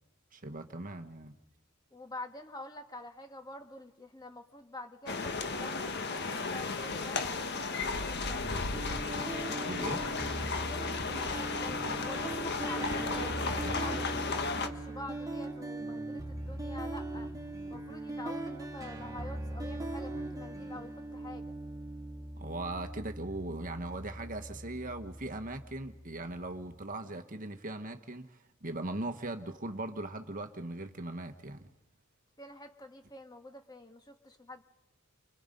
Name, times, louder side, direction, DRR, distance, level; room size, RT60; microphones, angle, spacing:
voice 1, 0.3-1.3 9.5-10.1 13.6-14.0 22.4-31.7, right 2 dB, 40° right, 1.3 m, -39 dB
voice 2, 1.9-8.6 10.6-17.3 17.7-21.6 32.4-34.6, left 2 dB, 20° left, 2.1 m, -47 dB
sound 1, 5.1-14.7, left 4 dB, 50° left, 1.6 m, -34 dB
sound 2, 8.7-26.7, right 2 dB, 15° right, 2.5 m, -40 dB
29.5 x 26.0 x 5.4 m
head